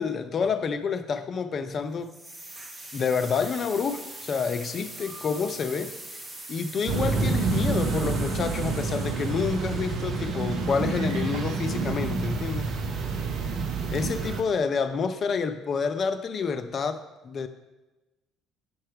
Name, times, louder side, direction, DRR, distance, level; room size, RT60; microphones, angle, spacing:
voice 1, 0.0-2.2 2.9-6.2 6.5-12.7 13.9-17.5, left 5 dB, 45° left, 10 dB, 0.5 m, -28 dB
sound 1, 2.0-10.9, right 1 dB, 20° right, 1.3 m, -43 dB
sound 2, 6.9-14.4, right 3 dB, 55° right, 0.7 m, -28 dB
8.5 x 5.7 x 3.2 m, 1.1 s
figure-of-eight pair, 50°, 0 cm